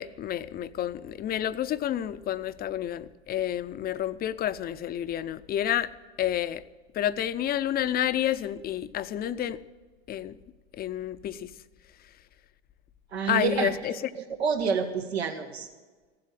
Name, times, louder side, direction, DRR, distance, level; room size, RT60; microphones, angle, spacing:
voice 1, 0.0-5.9 6.2-6.6 6.9-9.6 10.1-10.4 10.7-11.5 13.3-13.9, left 11 dB, 30° left, 14 dB, 0.6 m, -29 dB
voice 2, 13.1-13.7 14.1-15.7, right 6 dB, 85° right, 4 dB, 1.7 m, -28 dB
16.0 x 7.7 x 9.1 m, 1.3 s
hypercardioid pair, 90°, 31 cm